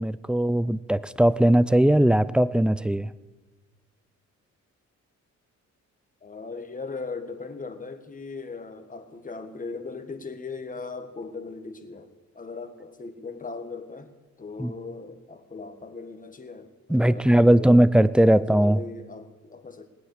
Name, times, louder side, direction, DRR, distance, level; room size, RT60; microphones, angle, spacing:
voice 1, 0.0-3.1 14.6-14.7 16.9-18.8, right 1 dB, 5° right, 17 dB, 0.5 m, -19 dB
voice 2, 6.2-17.8 18.2-19.9, left 4 dB, 25° left, 7 dB, 1.7 m, -39 dB
19.5 x 9.3 x 6.6 m, 1.2 s
cardioid pair, 90°, 30 cm